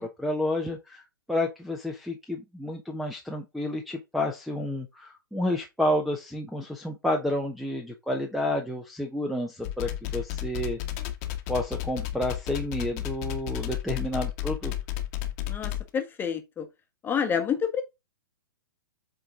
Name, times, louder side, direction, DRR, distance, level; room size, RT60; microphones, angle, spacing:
voice 1, 0.0-10.8 11.5-14.7, left 1 dB, ahead, 0.9 m, -30 dB
sound 1, 9.6-15.9, left 13 dB, 40° left, 1.3 m, -32 dB
voice 2, 15.4-16.7 17.0-17.8, left 7 dB, 15° left, 1.3 m, -28 dB
7.8 x 3.8 x 3.8 m
hypercardioid pair, 120°, 12 cm